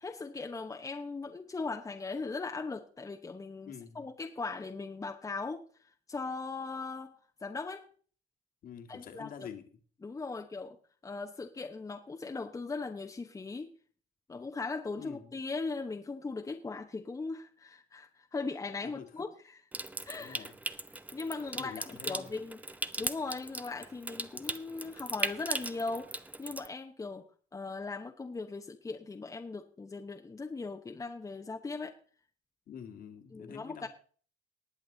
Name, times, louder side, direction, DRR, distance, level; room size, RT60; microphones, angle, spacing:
voice 1, 0.0-7.1 7.4-7.9 8.9-9.3 10.0-10.8 11.0-13.7 14.3-19.6 20.0-20.5 21.1-22.6 23.0-27.3 27.5-31.9 33.3-33.9, left 3 dB, 20° left, 4 dB, 1.0 m, -39 dB
voice 2, 3.6-4.1 8.6-9.6 15.0-15.3 18.8-19.2 20.2-20.6 21.5-22.3 32.7-33.9, left 8 dB, 55° left, 4 dB, 2.0 m, -46 dB
Water tap faucet / Sink (filling or washing) / Trickle dribble, 19.7-26.7, right 2 dB, 10° right, 0.7 m, -39 dB
19.5 x 7.5 x 3.9 m, 0.43 s
cardioid pair, 110°, 17 cm